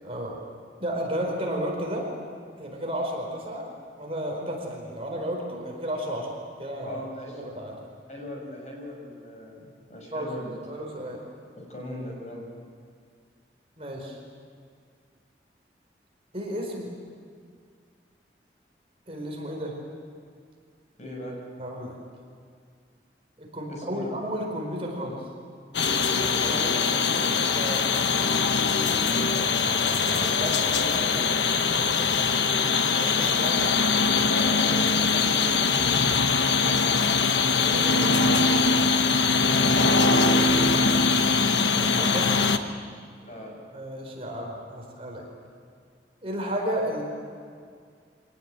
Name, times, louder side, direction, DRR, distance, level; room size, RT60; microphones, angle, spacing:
voice 1, 0.0-0.4 0.8-2.1 2.6-3.6 4.0-6.3 6.6-7.0 7.3-7.8 10.1-10.3 10.6-11.2 13.8-14.2 16.3-16.9 19.1-19.7 21.6-22.0 23.4-25.2 27.5-27.8 30.1-30.8 31.1-31.2 32.9-33.7 39.8-39.9 41.5-42.4 43.7-45.3 46.2-47.0, equal, 35° right, 0 dB, 4.6 m, -32 dB
voice 2, 6.8-7.4 8.1-10.6 11.6-12.5 21.0-21.4 23.7-24.1 26.3-27.2 28.6-29.3 30.6-32.0 34.2-35.9 37.4-38.3 39.7-40.6 43.2-43.6, left 1 dB, 40° left, 0 dB, 6.3 m, -38 dB
sound 1, 25.7-42.6, left 4 dB, 90° left, 1.2 m, -22 dB
25.5 x 18.5 x 9.0 m, 2.2 s
head